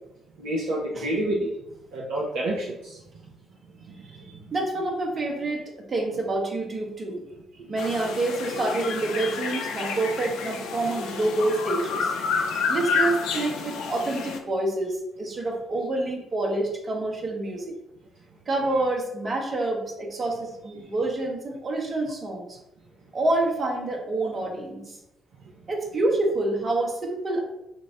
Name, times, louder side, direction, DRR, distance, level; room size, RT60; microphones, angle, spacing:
voice 1, 0.4-1.5 1.9-3.0 4.1-4.3 7.6-7.7, right 1 dB, 65° right, -4 dB, 0.5 m, -28 dB
voice 2, 4.5-7.2 7.7-12.1 12.7-17.7 18.5-22.6 23.1-25.0 25.7-27.4, right 2 dB, 40° right, 0 dB, 0.8 m, -27 dB
sound 1, 7.8-14.4, left 5 dB, 65° left, 0.4 m, -29 dB
3.8 x 2.0 x 3.7 m, 0.87 s
figure-of-eight pair, 45°, 0 cm